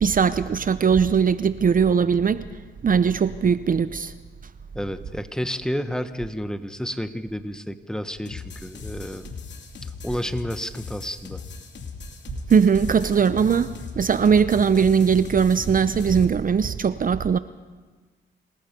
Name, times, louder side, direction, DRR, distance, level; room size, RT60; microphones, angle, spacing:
voice 1, 0.0-2.5 2.8-4.1 12.5-17.4, right 6 dB, 45° right, 13 dB, 0.8 m, -20 dB
voice 2, 4.7-9.3 10.0-11.4, equal, 5° left, 10 dB, 1.2 m, -30 dB
sound 1, 8.3-16.3, left 5 dB, 65° left, 2.7 m, -39 dB
27.0 x 18.5 x 5.3 m, 1.3 s
cardioid pair, 75°, 20 cm